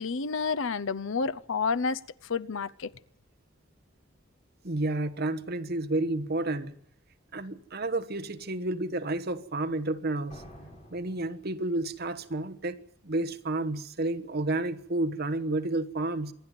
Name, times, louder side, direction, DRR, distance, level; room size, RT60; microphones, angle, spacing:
voice 1, 0.0-2.9, left 5 dB, 75° left, 0.7 m, -30 dB
voice 2, 4.6-6.7 7.3-10.4 10.9-12.8 13.0-16.3, right 2 dB, 55° right, 1.3 m, -30 dB
sound 1, 10.3-12.1, equal, 35° left, 5.9 m, -50 dB
26.5 x 11.0 x 9.3 m
head